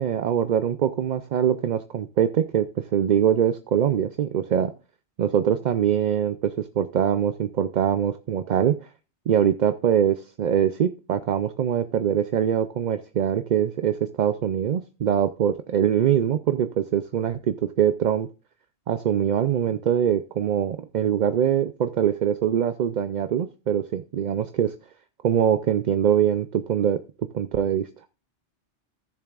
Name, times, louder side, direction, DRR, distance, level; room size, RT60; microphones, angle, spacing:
voice 1, 0.0-4.7 5.2-8.9 9.3-18.3 18.9-24.7 25.2-27.0 27.3-27.9, right 9 dB, 55° right, 10 dB, 0.5 m, -23 dB
16.0 x 6.9 x 2.4 m, 0.33 s
omnidirectional pair, 1.1 m